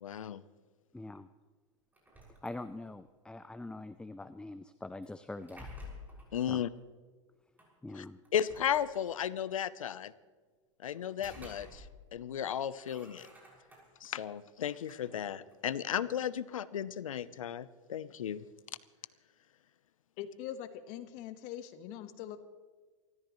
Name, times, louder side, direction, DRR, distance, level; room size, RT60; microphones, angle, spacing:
voice 1, 0.0-0.4 6.3-6.7 8.0-8.1 8.3-10.1 10.8-11.8 12.1-13.3 14.0-18.4, left 9 dB, 90° left, 17 dB, 0.7 m, -35 dB
voice 2, 0.9-1.3 2.4-5.7 6.5-6.6 7.8-8.2, left 2 dB, 5° left, 13 dB, 0.4 m, -44 dB
sound 1, 1.9-3.1 5.0-6.4 7.6-7.7 8.2-9.3 10.9-12.1 12.4-14.1 14.6-16.2, left 2 dB, 10° right, 6.2 m, -52 dB
voice 3, 20.2-22.4, left 11 dB, 55° left, 9 dB, 1.5 m, -42 dB
29.0 x 14.0 x 3.1 m, 1.4 s
hypercardioid pair, 105°, 17 cm